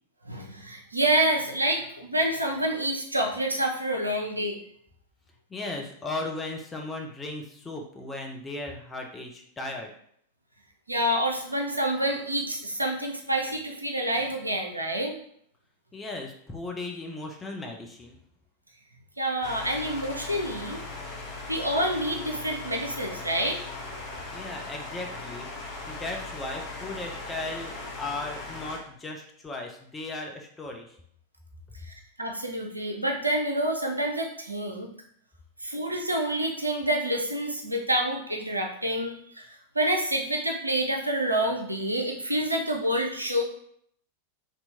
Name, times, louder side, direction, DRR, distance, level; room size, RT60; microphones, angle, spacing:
voice 1, 0.2-4.6 10.9-15.2 19.2-20.8 21.5-23.6 31.8-34.9 35.6-39.4 39.7-43.4, right 1 dB, 85° right, 1 dB, 0.5 m, -28 dB
voice 2, 5.5-9.9 15.9-18.2 24.3-25.5 25.9-31.0, left 2 dB, 15° left, 1 dB, 0.6 m, -36 dB
sound 1, 19.4-28.8, left 3 dB, 35° left, 1.0 m, -39 dB
2.9 x 2.6 x 3.4 m, 0.67 s
figure-of-eight pair, 90°, 0 cm